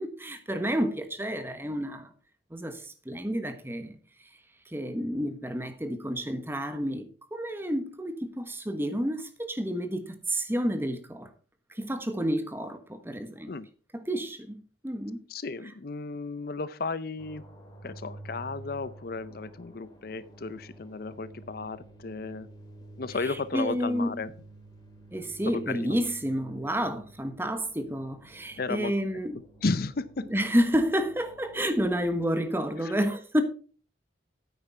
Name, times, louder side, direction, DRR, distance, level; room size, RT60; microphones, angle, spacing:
voice 1, 0.0-2.1 2.5-4.0 4.7-7.0 7.3-11.3 11.8-13.5 13.9-15.2 23.2-24.2 25.1-29.4 30.3-33.4, equal, 10° right, 1.3 m, -30 dB
voice 2, 15.3-17.4 17.8-22.5 23.0-24.3 25.5-26.0 28.6-28.9 29.6-30.2 32.8-32.9, left 3 dB, 55° left, 0.6 m, -34 dB
sound 1, 17.2-32.2, right 2 dB, 20° left, 3.1 m, -50 dB
9.6 x 9.0 x 4.4 m
head